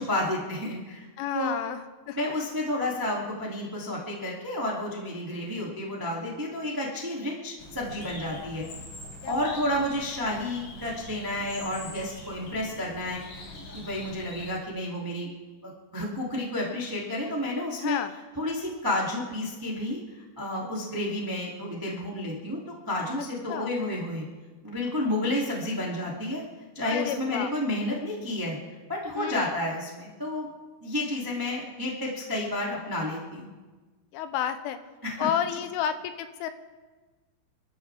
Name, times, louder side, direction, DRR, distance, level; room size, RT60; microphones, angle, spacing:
voice 1, 0.0-1.0 1.3-1.6 2.1-8.7 9.2-13.2 13.7-15.3 15.6-18.0 18.4-20.0 20.4-22.6 22.8-24.2 24.6-26.4 26.7-28.6 28.9-30.5 30.8-33.5 35.0-35.3, left 1 dB, 25° right, -3 dB, 0.4 m, -31 dB
voice 2, 1.2-2.2 9.2-9.6 17.8-18.1 23.5-23.7 26.8-27.5 29.2-29.5 34.1-34.8 35.2-36.5, left 9 dB, 85° left, 9 dB, 3.3 m, -31 dB
Bird, 7.6-14.5, left 2 dB, 65° left, 5.8 m, -44 dB
29.0 x 13.0 x 3.5 m, 1.3 s
omnidirectional pair, 5.7 m